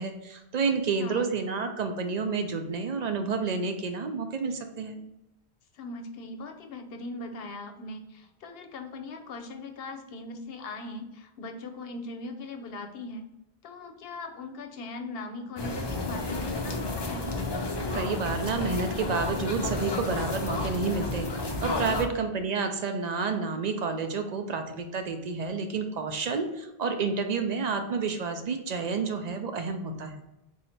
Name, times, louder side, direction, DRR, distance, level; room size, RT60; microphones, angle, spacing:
voice 1, 0.0-5.0 17.9-21.3 21.6-30.1, right 4 dB, 50° right, 6 dB, 0.5 m, -30 dB
voice 2, 5.7-13.3 13.6-17.3 21.9-22.1, left 3 dB, 70° left, 5 dB, 0.8 m, -40 dB
sound 1, 15.6-22.0, left 2 dB, 35° left, 0.4 m, -31 dB
4.2 x 2.7 x 4.2 m, 0.93 s
omnidirectional pair, 1.1 m